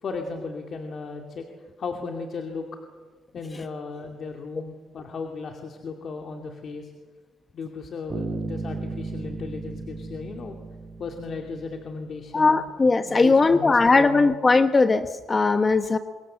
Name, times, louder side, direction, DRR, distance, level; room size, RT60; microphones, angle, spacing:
voice 1, 0.0-1.5 1.8-2.7 3.3-6.9 7.5-10.6 11.0-12.6 13.0-14.3, left 4 dB, 55° left, 3 dB, 2.6 m, -35 dB
Bass guitar, 8.1-11.9, right 3 dB, 35° right, 3.8 m, -35 dB
voice 2, 12.3-16.0, left 3 dB, 30° left, 9 dB, 1.0 m, -19 dB
26.0 x 22.0 x 7.6 m, 1.4 s
cardioid pair, 90°, 0 cm